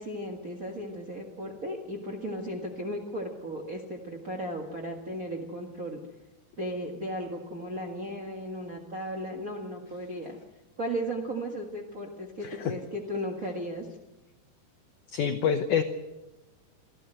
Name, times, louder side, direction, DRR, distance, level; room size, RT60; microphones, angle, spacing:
voice 1, 0.0-6.0 6.6-10.4 10.8-13.9, equal, 55° right, 1 dB, 0.9 m, -35 dB
voice 2, 12.4-12.7 15.1-15.8, left 7 dB, 75° left, 8 dB, 1.8 m, -26 dB
24.5 x 14.5 x 7.8 m, 1.1 s
omnidirectional pair, 4.7 m